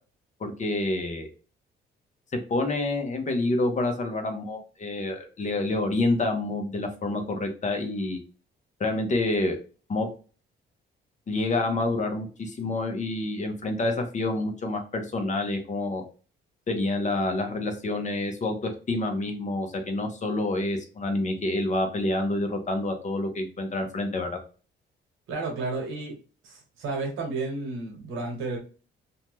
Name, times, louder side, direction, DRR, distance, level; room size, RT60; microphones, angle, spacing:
voice 1, 0.4-1.3 2.5-8.2 8.8-9.6 9.9-10.1 11.3-16.0 16.7-24.3, left 2 dB, 35° left, 5 dB, 0.7 m, -28 dB
voice 2, 25.3-26.1 26.4-28.6, right 3 dB, 90° right, 2 dB, 1.1 m, -32 dB
2.7 x 2.2 x 3.0 m, 0.36 s
cardioid pair, 90°, 20 cm